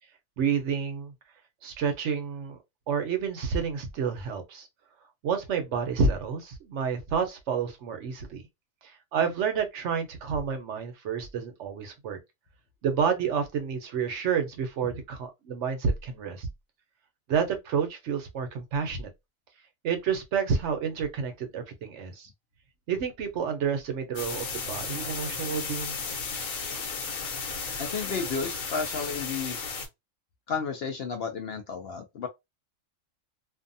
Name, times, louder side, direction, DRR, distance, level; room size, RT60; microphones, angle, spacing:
voice 1, 0.4-1.1 1.6-2.6 2.9-4.7 5.2-8.5 9.1-12.2 12.8-16.5 17.3-19.1 19.8-22.3 22.9-26.0, right 6 dB, 65° right, 0.9 m, -29 dB
sound 1, 24.2-29.9, left 5 dB, 85° left, 1.2 m, -34 dB
voice 2, 27.8-29.6 30.5-32.3, left 5 dB, 60° left, 0.7 m, -32 dB
2.6 x 2.2 x 2.6 m
omnidirectional pair, 1.4 m